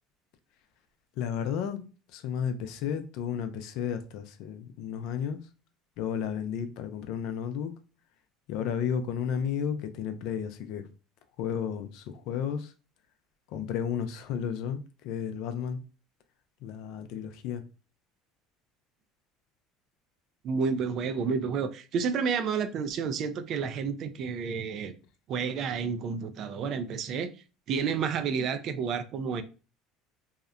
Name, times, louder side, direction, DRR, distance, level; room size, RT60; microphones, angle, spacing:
voice 1, 1.2-1.8 2.1-5.4 6.0-7.7 8.5-10.9 11.4-12.7 13.5-14.8 15.0-15.8 16.6-17.6, left 8 dB, 70° left, 0.4 m, -32 dB
voice 2, 20.4-24.9 25.3-27.3 27.7-29.4, right 6 dB, 55° right, 0.3 m, -30 dB
2.7 x 2.0 x 2.4 m
supercardioid pair, 90°, 0 cm